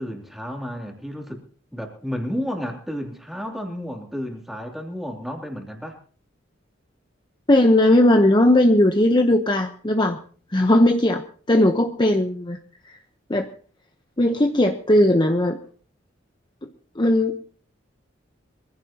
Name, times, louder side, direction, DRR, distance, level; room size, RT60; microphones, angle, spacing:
voice 1, 0.0-1.4 1.7-6.0, equal, ahead, 2 dB, 3.0 m, -32 dB
voice 2, 7.5-10.2 10.5-12.6 12.8-13.0 13.3-13.5 14.2-15.6 17.0-17.4, left 1 dB, 25° left, 5 dB, 1.0 m, -18 dB
23.5 x 15.5 x 2.9 m, 0.43 s
head